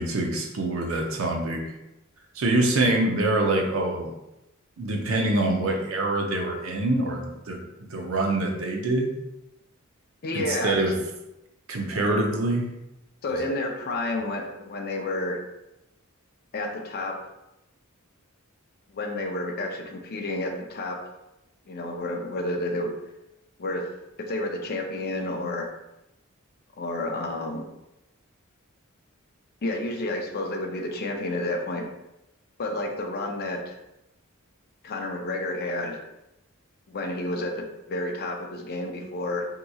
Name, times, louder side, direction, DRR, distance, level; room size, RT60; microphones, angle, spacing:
voice 1, 0.0-1.6 2.4-4.1 4.8-7.6 7.9-9.1 10.3-10.9 11.7-12.7 13.3-13.4, right 2 dB, 70° right, 2 dB, 0.6 m, -25 dB
voice 2, 10.2-10.8 13.2-15.4 16.5-17.1 18.9-21.0 21.7-22.9 23.6-23.8 24.3-25.7 26.8-27.6 29.6-31.9 32.6-33.8 34.8-36.1 36.9-39.5, left 2 dB, 45° left, 3 dB, 0.5 m, -30 dB
3.9 x 2.9 x 2.3 m, 0.91 s
head